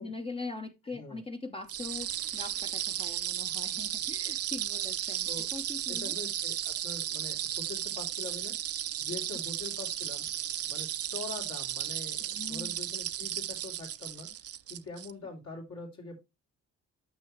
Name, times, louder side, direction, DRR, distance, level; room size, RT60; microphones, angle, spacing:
voice 1, 0.0-6.2 12.2-12.8, left 3 dB, 20° left, 0.8 m, -42 dB
voice 2, 0.8-1.2 4.2-4.3 5.2-5.5 5.9-10.3 10.6-16.2, left 3 dB, 65° left, 3.0 m, -44 dB
sound 1, 1.7-15.1, right 11 dB, 50° right, 0.6 m, -34 dB
9.3 x 6.2 x 3.1 m
cardioid pair, 90°, 30 cm